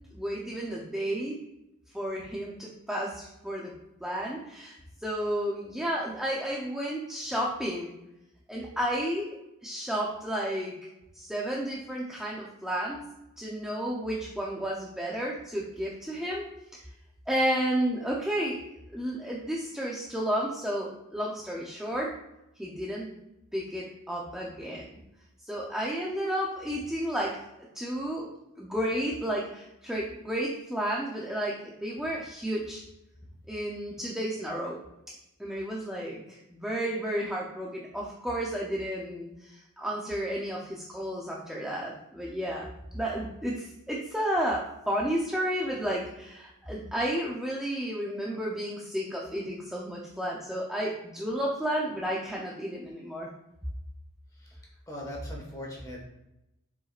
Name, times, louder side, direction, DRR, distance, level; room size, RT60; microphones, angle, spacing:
voice 1, 0.1-1.4 1.9-3.7 4.0-7.9 8.5-10.8 11.1-13.1 13.4-16.8 17.3-22.2 22.6-23.1 23.5-25.0 25.5-27.5 27.7-28.3 28.6-32.8 33.5-34.8 35.4-42.7 42.9-53.3, equal, 5° right, -4 dB, 0.7 m, -32 dB
voice 2, 54.9-56.0, left 1 dB, 15° left, -2 dB, 1.6 m, -40 dB
7.2 x 5.3 x 2.5 m, 0.90 s
head